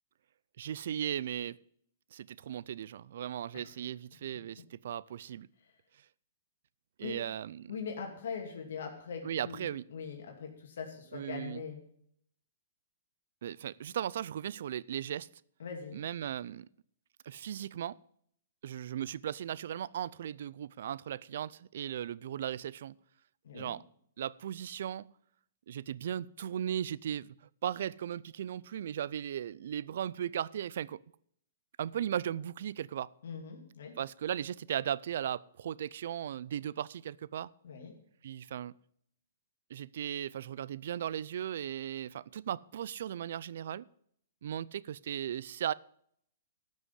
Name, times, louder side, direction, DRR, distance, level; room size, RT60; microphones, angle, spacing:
voice 1, 0.6-1.6 2.1-5.5 7.0-7.7 9.2-9.9 11.1-11.6 13.4-15.3 15.9-16.7 17.3-17.9 18.6-22.9 23.5-23.8 24.2-25.1 25.7-27.3 27.6-31.0 31.8-33.1 34.0-37.5 38.2-38.7 39.7-43.9 44.4-45.7, right 10 dB, 65° right, 0.4 m, -37 dB
voice 2, 7.7-11.8 15.6-16.0 23.4-23.7 33.2-34.0 37.6-37.9, left 6 dB, 75° left, 2.5 m, -42 dB
12.5 x 6.4 x 8.1 m
hypercardioid pair, 155°, 0 cm